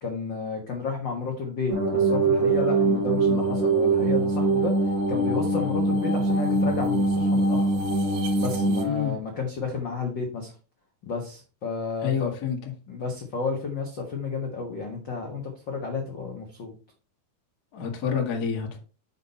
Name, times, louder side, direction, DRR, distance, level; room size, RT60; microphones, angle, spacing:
voice 1, 0.0-4.7 5.1-7.7 8.4-10.5 11.0-12.3 12.9-16.7, left 4 dB, 85° left, 1 dB, 1.0 m, -31 dB
sound 1, 1.7-8.8, right 2 dB, 65° right, 3.2 m, -23 dB
voice 2, 12.0-12.6 17.7-18.8, left 7 dB, 55° left, 0 dB, 1.1 m, -27 dB
7.6 x 5.5 x 4.2 m, 0.35 s
omnidirectional pair, 4.5 m